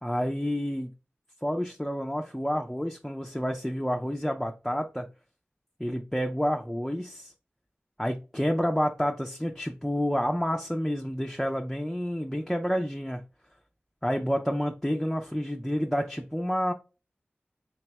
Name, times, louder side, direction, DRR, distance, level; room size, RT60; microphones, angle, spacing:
voice 1, 0.0-0.9 1.4-5.1 5.8-7.3 8.0-13.2 14.0-16.7, equal, 5° left, 0.5 m, -29 dB
3.5 x 3.3 x 3.0 m
wide cardioid pair, 50°, 4 cm